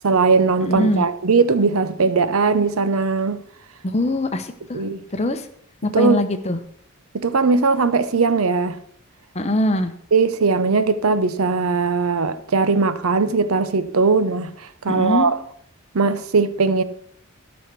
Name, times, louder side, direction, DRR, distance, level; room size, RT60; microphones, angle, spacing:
voice 1, 0.0-3.4 4.7-5.0 5.9-6.2 7.1-8.8 10.1-14.5 14.8-15.3 15.9-16.8, right 4 dB, 85° right, 0.7 m, -19 dB
voice 2, 0.6-1.1 3.9-4.8 5.1-5.5 5.8-6.6 9.3-9.9 14.9-15.3, left 1 dB, 30° left, 0.9 m, -22 dB
13.0 x 6.3 x 6.0 m
head